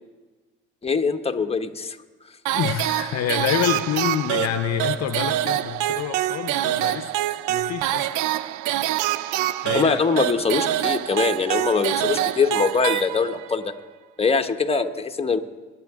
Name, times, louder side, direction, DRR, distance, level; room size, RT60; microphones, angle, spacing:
voice 1, 0.8-2.0 9.7-13.7 14.2-15.4, left 5 dB, 20° left, 1.1 m, -23 dB
voice 2, 2.5-7.1 7.5-8.1 9.6-10.2, left 10 dB, 55° left, 0.7 m, -27 dB
sound 1, 2.5-13.6, right 13 dB, 75° right, 0.5 m, -25 dB
22.0 x 9.9 x 3.7 m
hypercardioid pair, 60°, 30 cm